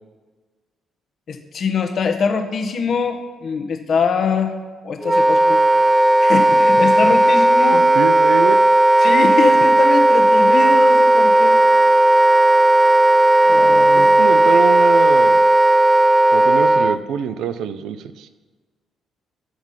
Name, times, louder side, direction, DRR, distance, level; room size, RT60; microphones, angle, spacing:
voice 1, 1.3-4.5 4.8-5.6 6.2-7.9 9.0-11.6 13.5-14.1, left 5 dB, 55° left, 6 dB, 1.2 m, -23 dB
Wind instrument woodwind instrument, 5.0-17.0, right 1 dB, 10° right, 0.3 m, -14 dB
voice 2, 7.7-8.6 14.0-15.4 16.3-18.3, right 8 dB, 80° right, 12 dB, 0.6 m, -25 dB
13.5 x 6.0 x 5.8 m, 1.4 s
cardioid pair, 90°, 0 cm